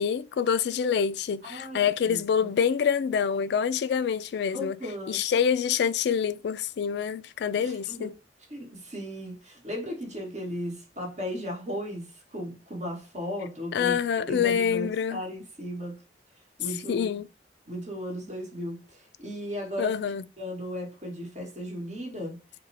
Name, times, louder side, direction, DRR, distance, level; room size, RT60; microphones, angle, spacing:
voice 1, 0.0-4.8 5.1-8.1 13.7-15.2 16.9-17.3 19.8-20.2, left 7 dB, 65° left, 0.3 m, -26 dB
voice 2, 1.4-1.8 2.0-2.5 4.5-5.2 7.6-8.1 8.5-14.0 14.3-16.0 16.6-17.1 17.7-19.9 20.4-22.4, equal, 40° right, 1.5 m, -36 dB
5.5 x 2.2 x 3.3 m
head